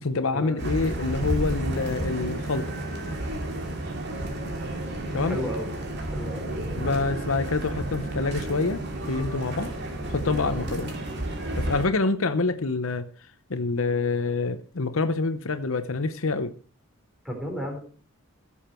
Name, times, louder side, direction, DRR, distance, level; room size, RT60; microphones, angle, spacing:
voice 1, 0.0-2.6 5.1-5.4 6.8-8.8 9.1-9.7 10.1-10.9 11.6-13.1 13.5-16.5, left 3 dB, 70° left, 10 dB, 0.9 m, -26 dB
sound 1, 0.6-11.9, right 1 dB, 55° right, 2.5 m, -31 dB
voice 2, 5.0-5.7 6.1-6.5 17.2-17.8, equal, ahead, 1 dB, 3.7 m, -34 dB
15.5 x 7.3 x 4.5 m, 0.38 s
head